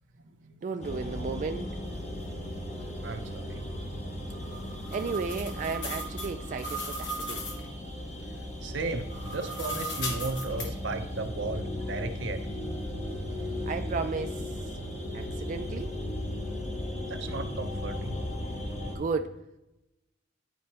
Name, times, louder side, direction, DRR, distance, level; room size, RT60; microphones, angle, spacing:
voice 1, 0.6-1.7 4.9-7.5 13.7-14.5 15.1-16.0 18.8-19.3, right 4 dB, 45° right, 7 dB, 0.3 m, -34 dB
sound 1, 0.8-19.0, left 1 dB, 40° left, 1.2 m, -36 dB
voice 2, 3.0-3.6 8.6-12.7 17.1-18.2, right 3 dB, 85° right, 7 dB, 0.7 m, -35 dB
sound 2, 4.3-7.7 9.0-10.7, equal, 85° left, 1.3 m, -37 dB
10.5 x 4.3 x 2.9 m, 0.94 s
head